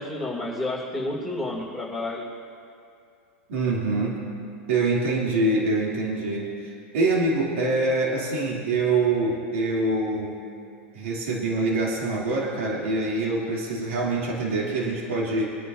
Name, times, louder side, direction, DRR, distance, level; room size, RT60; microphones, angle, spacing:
voice 1, 0.0-2.2, left 2 dB, 5° right, -5 dB, 2.8 m, -30 dB
voice 2, 3.5-4.2 4.7-10.4 10.9-15.4, right 2 dB, 80° right, -4 dB, 3.0 m, -25 dB
24.5 x 10.5 x 2.7 m, 2.5 s
hypercardioid pair, 120°, 7 cm